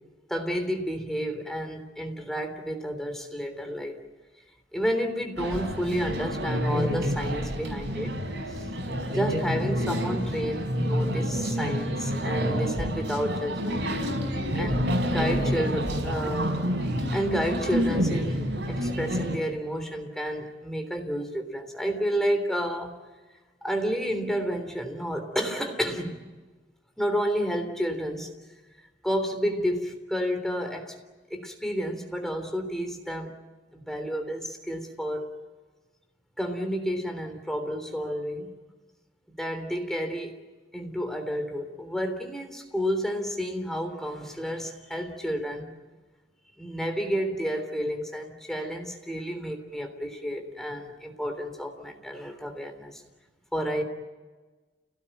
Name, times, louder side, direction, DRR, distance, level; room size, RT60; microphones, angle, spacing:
voice 1, 0.3-4.0 4.7-8.2 9.1-13.9 14.5-16.6 17.1-23.0 23.6-26.2 27.0-28.3 29.0-31.0 31.3-33.4 33.7-35.3 36.4-38.5 39.4-40.4 40.7-45.7 46.6-53.0 53.5-53.8, equal, ahead, 4 dB, 3.4 m, -30 dB
sound 1, 5.4-19.4, equal, 90° right, 5.2 m, -28 dB
30.0 x 18.0 x 9.2 m, 1.3 s
head